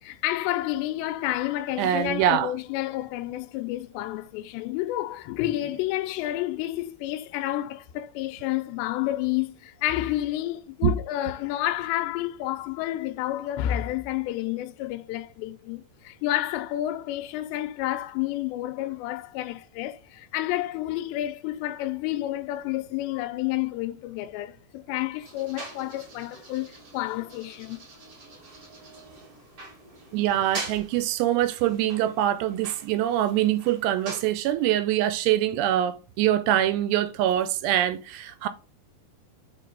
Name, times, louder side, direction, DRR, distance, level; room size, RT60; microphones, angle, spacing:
voice 1, 0.0-27.8, left 14 dB, 90° left, 2.8 m, -30 dB
voice 2, 1.8-2.5 10.8-10.9 30.1-38.5, right 12 dB, 85° right, 2.7 m, -24 dB
sound 1, 25.2-34.3, right 2 dB, 50° right, 1.0 m, -43 dB
6.5 x 4.6 x 3.8 m
omnidirectional pair, 4.9 m